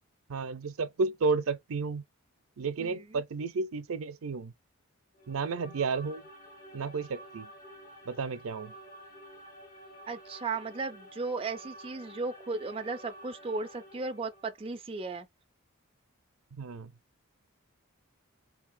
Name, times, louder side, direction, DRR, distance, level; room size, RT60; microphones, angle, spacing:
voice 1, 0.3-2.0 2.6-4.5 5.3-6.2 6.7-7.5 8.1-8.7 16.6-16.9, right 4 dB, 80° right, 0.5 m, -32 dB
voice 2, 2.8-3.2 10.1-15.3, right 3 dB, 25° right, 0.4 m, -36 dB
sound 1, 5.1-14.6, right 1 dB, 40° left, 2.1 m, -50 dB
3.8 x 2.7 x 2.5 m
head